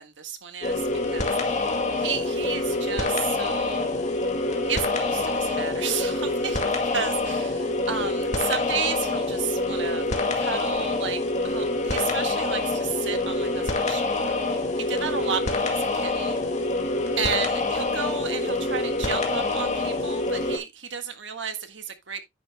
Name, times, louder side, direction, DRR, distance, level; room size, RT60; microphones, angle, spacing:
voice 1, 0.0-3.9 4.6-10.0 10.4-11.2 11.4-16.4 17.2-22.2, right 7 dB, 80° right, 1.6 m, -33 dB
sound 1, 0.6-20.6, left 2 dB, 40° left, 2.1 m, -26 dB
10.5 x 8.6 x 2.2 m
head